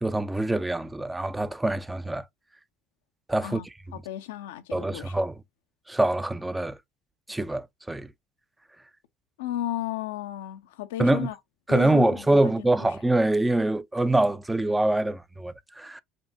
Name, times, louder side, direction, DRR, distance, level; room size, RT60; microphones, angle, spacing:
voice 1, 0.0-2.3 3.3-3.6 4.7-5.3 5.9-6.8 7.3-8.1 11.0-11.3 11.7-16.0, right 2 dB, 10° right, 0.5 m, -24 dB
voice 2, 3.9-5.1 9.4-11.4 11.7-12.9, left 12 dB, 80° left, 0.6 m, -34 dB
5.2 x 2.2 x 2.6 m
hypercardioid pair, 70°, 0 cm